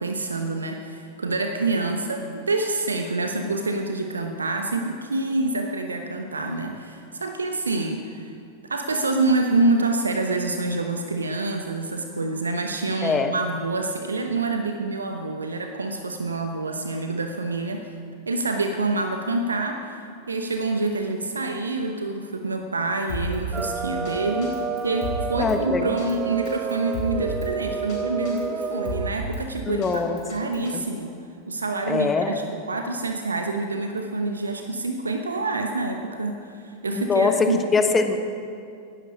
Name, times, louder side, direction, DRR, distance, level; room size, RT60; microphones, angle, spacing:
voice 1, 0.0-8.3 8.7-17.9 18.3-31.1 31.5-37.6, right 2 dB, 75° right, 5 dB, 0.9 m, -27 dB
Drum kit, 23.1-23.7 24.1-24.2 24.4-25.6 26.0-26.1 26.5-27.5 27.9-28.0 28.3-29.4 29.8-30.7, equal, 45° left, 3.9 m, -32 dB
sound 1, 23.5-29.1, right 6 dB, 20° right, 0.6 m, -30 dB
voice 2, 25.4-26.0 29.7-30.2 30.7-30.8 31.9-32.4 37.0-38.3, left 4 dB, 20° left, 7 dB, 1.2 m, -23 dB
17.0 x 11.0 x 5.3 m, 2.4 s
figure-of-eight pair, 90°, 0 cm